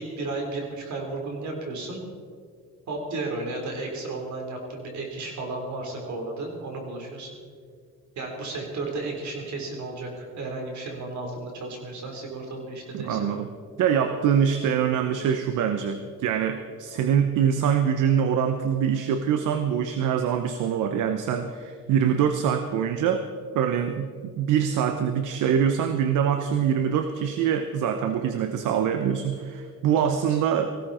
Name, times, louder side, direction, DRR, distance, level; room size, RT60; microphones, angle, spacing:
voice 1, 0.0-2.0 2.9-7.3 8.2-13.3 29.9-30.4, right 2 dB, 70° right, 1 dB, 4.2 m, -33 dB
voice 2, 12.9-13.5 13.8-23.3 23.5-30.8, right 8 dB, 85° right, 8 dB, 0.9 m, -24 dB
19.0 x 16.0 x 4.4 m, 2.1 s
cardioid pair, 90°, 30 cm